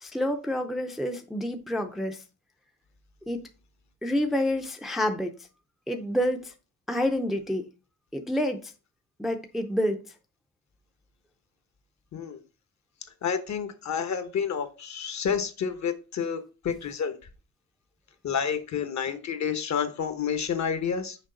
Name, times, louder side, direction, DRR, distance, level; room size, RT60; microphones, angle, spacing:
voice 1, 0.0-2.2 3.3-3.4 4.0-5.3 5.9-6.5 6.9-7.6 8.1-8.7 9.2-10.0, left 1 dB, ahead, 0.5 m, -28 dB
voice 2, 13.2-17.1 18.2-21.2, left 7 dB, 50° left, 1.0 m, -29 dB
6.4 x 4.6 x 3.9 m
cardioid pair, 130°, 36 cm